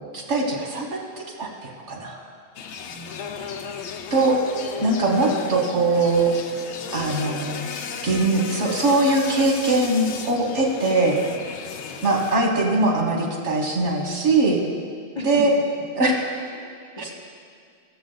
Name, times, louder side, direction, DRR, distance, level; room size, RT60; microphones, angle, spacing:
voice 1, 0.1-1.0 1.4-2.2 4.1-4.4 4.8-6.3 6.9-7.7 8.0-11.2 12.0-14.6 15.2-15.5 16.0-16.1 17.0-17.1, right 2 dB, 85° right, 0 dB, 1.7 m, -21 dB
sound 1, 2.5-12.4, left 6 dB, 75° left, 0.9 m, -35 dB
voice 2, 2.9-3.6 5.6-6.0 11.7-12.0 15.1-15.6 16.5-17.0, equal, 25° left, -3 dB, 1.4 m, -38 dB
15.5 x 7.1 x 4.0 m, 2.2 s
omnidirectional pair, 1.2 m